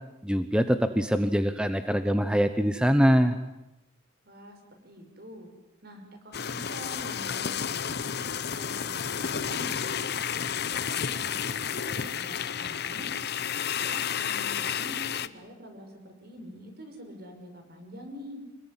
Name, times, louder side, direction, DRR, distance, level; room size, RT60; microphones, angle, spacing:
voice 1, 0.2-3.4, equal, 5° right, 9 dB, 1.0 m, -23 dB
voice 2, 4.3-5.5 5.8-8.1 8.4-10.1 10.6-13.1 13.6-18.4, equal, 55° right, 5 dB, 5.9 m, -46 dB
sound 1, 6.3-15.3, left 8 dB, 55° left, 0.9 m, -31 dB
26.5 x 20.5 x 9.9 m, 0.98 s
head